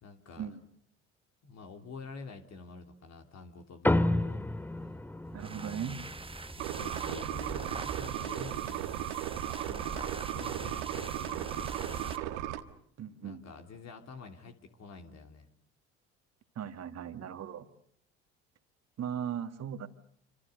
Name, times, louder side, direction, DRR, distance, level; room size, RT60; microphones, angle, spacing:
voice 1, 0.0-0.5 1.4-4.4 4.8-5.0 6.6-9.2 9.6-12.2 13.2-15.5, left 4 dB, 50° left, 4 dB, 3.2 m, -48 dB
sound 1, 3.8-8.6, left 1 dB, 5° left, 1.0 m, -33 dB
sound 2, 5.3-12.3, right 3 dB, 15° right, 1.4 m, -43 dB
voice 2, 5.3-6.0 13.0-13.4 16.6-17.7 19.0-19.9, right 8 dB, 50° right, 8 dB, 2.3 m, -38 dB
sound 3, 6.6-12.6, right 13 dB, 80° right, 1.7 m, -36 dB
27.5 x 26.5 x 6.8 m, 0.65 s
hypercardioid pair, 60°, 33 cm